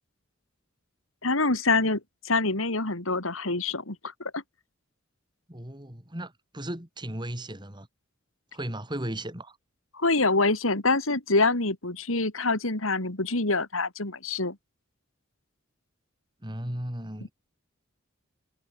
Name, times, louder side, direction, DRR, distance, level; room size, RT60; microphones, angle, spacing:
voice 1, 1.2-4.4 9.9-14.6, left 3 dB, 85° left, 3.6 m, -26 dB
voice 2, 5.5-7.9 8.5-9.6 16.4-17.3, right 1 dB, 20° right, 4.3 m, -36 dB
head